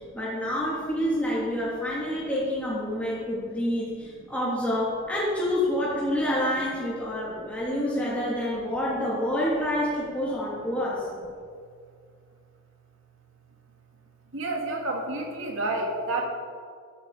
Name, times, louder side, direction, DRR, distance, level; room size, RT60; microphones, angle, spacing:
voice 1, 0.0-11.0, left 1 dB, 5° left, -8 dB, 3.1 m, -28 dB
voice 2, 3.9-4.3 7.2-7.5 14.3-16.3, right 2 dB, 80° right, 1 dB, 2.7 m, -31 dB
15.0 x 13.0 x 5.1 m, 2.1 s
head